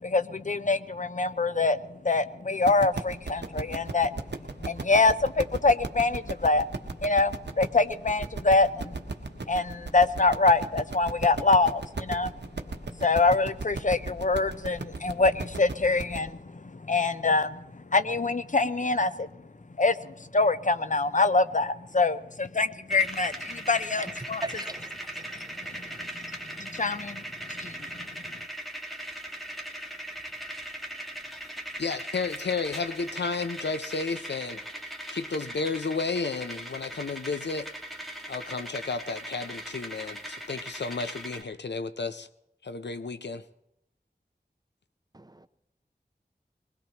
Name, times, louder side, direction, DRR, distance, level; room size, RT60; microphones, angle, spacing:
voice 1, 0.0-4.1 4.6-9.0 9.5-12.3 13.0-19.3 19.8-24.4 25.8-25.9 26.6-27.2 27.5-27.8, left 3 dB, 45° left, 0.6 m, -25 dB
sound 1, 2.6-16.2, right 3 dB, 80° right, 0.9 m, -36 dB
sound 2, 22.9-41.4, right 1 dB, ahead, 1.9 m, -39 dB
voice 2, 24.4-24.9 25.2-25.3 45.1-45.5, right 2 dB, 20° right, 0.5 m, -37 dB
voice 3, 31.8-34.6 35.1-37.7 38.3-42.3 42.6-43.4, left 4 dB, 85° left, 0.6 m, -32 dB
21.0 x 19.5 x 2.9 m
wide cardioid pair, 50°, 18 cm